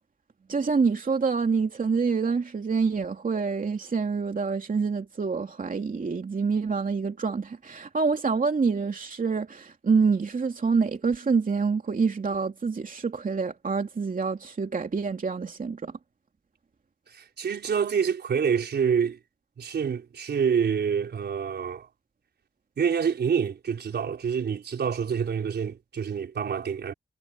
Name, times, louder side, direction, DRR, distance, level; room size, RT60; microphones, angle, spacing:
voice 1, 0.5-15.9, right 5 dB, 55° right, 2.8 m, -26 dB
voice 2, 17.1-19.2 19.6-21.9 22.8-26.9, right 7 dB, 85° right, 4.5 m, -27 dB
cardioid pair, 60°, 17 cm